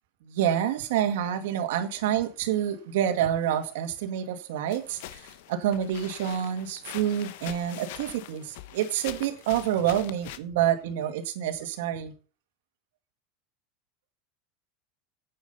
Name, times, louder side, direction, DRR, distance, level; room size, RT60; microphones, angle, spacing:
voice 1, 0.2-12.1, right 10 dB, 80° right, 2.1 m, -28 dB
sound 1, 4.7-10.4, left 13 dB, 70° left, 1.0 m, -43 dB
9.4 x 8.8 x 5.6 m
supercardioid pair, 160°, 0 cm